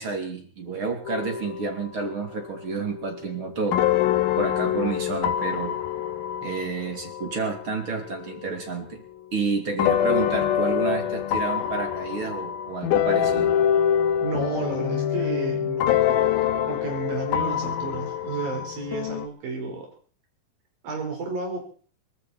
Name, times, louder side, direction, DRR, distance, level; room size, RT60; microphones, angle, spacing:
voice 1, 0.0-3.8 4.4-5.8 6.4-9.0 9.3-13.5, right 4 dB, 35° right, 4 dB, 3.4 m, -30 dB
sound 1, 1.1-2.1 2.4-8.7 9.8-19.3, left 10 dB, 90° left, 2.8 m, -25 dB
voice 2, 14.2-16.0 16.7-19.9 20.8-21.6, right 4 dB, 80° right, 2 dB, 6.5 m, -32 dB
23.0 x 13.5 x 4.3 m, 0.44 s
omnidirectional pair, 4.1 m